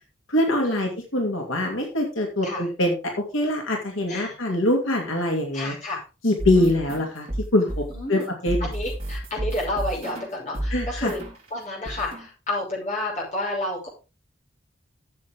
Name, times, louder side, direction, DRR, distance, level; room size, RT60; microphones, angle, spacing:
voice 1, 0.3-2.9 3.3-5.7 6.2-7.3 7.5-7.8 8.1-8.7 10.7-11.1, left 1 dB, 85° left, 1 dB, 2.6 m, -23 dB
voice 2, 5.5-6.0 6.6-6.7 7.9-8.3 8.6-11.2 11.5-13.9, left 1 dB, 35° left, -3 dB, 5.5 m, -30 dB
sound 1, 6.4-11.5 11.8-12.3, right 1 dB, 30° right, 3.7 m, -31 dB
13.5 x 7.6 x 3.7 m, 0.31 s
head